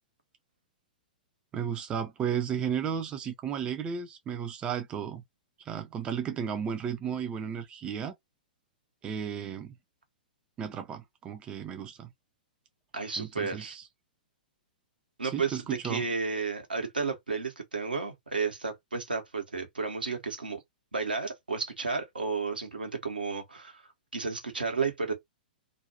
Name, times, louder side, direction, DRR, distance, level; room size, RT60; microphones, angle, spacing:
voice 1, 1.5-5.2 5.6-8.1 9.0-9.8 10.6-12.1 13.2-13.8 15.3-16.1, right 8 dB, 20° right, 0.4 m, -34 dB
voice 2, 12.9-13.8 15.2-15.6 15.8-20.6 20.9-25.1, right 4 dB, 80° right, 1.1 m, -32 dB
2.5 x 2.2 x 2.8 m
figure-of-eight pair, 105°, 5 cm